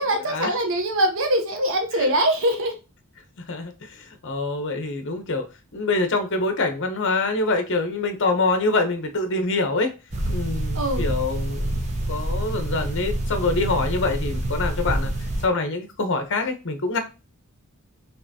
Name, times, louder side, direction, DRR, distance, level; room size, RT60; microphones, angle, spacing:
voice 1, 0.0-2.7 10.7-11.0, right 1 dB, 60° right, 0.8 m, -23 dB
voice 2, 3.5-5.4 5.7-9.9 10.3-11.7 12.1-15.1 15.4-17.0, left 3 dB, 55° left, 0.9 m, -25 dB
sound 1, 10.1-15.5, right 1 dB, 30° right, 0.9 m, -27 dB
5.7 x 3.1 x 2.8 m
head